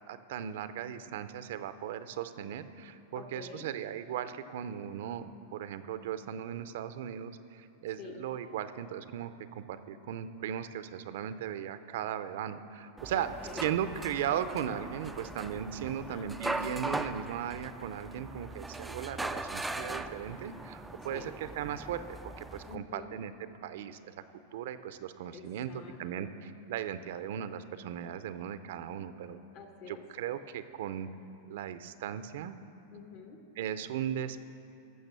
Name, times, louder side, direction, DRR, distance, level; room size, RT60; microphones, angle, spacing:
voice 1, 0.1-13.3 13.6-23.3 23.6-24.1 24.5-25.7 26.0-29.4 29.9-31.1 31.5-32.6 33.6-34.4, right 9 dB, 70° right, 12 dB, 0.6 m, -37 dB
voice 2, 3.1-3.7 8.0-8.2 13.1-13.7 15.8-16.3 21.1-21.3 22.7-23.2 25.3-26.4 29.5-30.0 32.9-33.4, left 6 dB, 50° left, 4 dB, 1.4 m, -48 dB
sound 1, 13.0-22.8, right 2 dB, 5° right, 0.3 m, -40 dB
15.0 x 6.5 x 6.8 m, 2.7 s
supercardioid pair, 135°, 0 cm